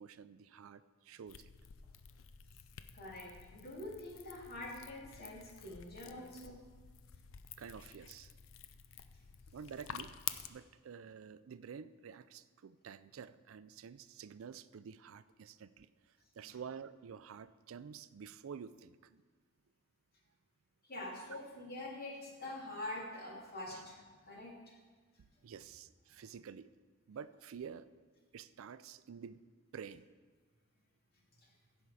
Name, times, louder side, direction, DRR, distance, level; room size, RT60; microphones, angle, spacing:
voice 1, 0.0-1.5 7.6-8.3 9.5-10.1 10.5-15.9 16.4-19.2 21.3-21.4 25.4-26.7 27.1-27.9 28.3-29.4 29.7-30.1, right 7 dB, 85° right, 15 dB, 0.4 m, -49 dB
sound 1, 1.3-10.5, left 9 dB, 75° left, 0.5 m, -50 dB
voice 2, 2.9-6.6 16.4-16.6 20.9-24.8, left 1 dB, 50° left, -3 dB, 2.4 m, -46 dB
15.5 x 5.4 x 4.7 m, 1.5 s
head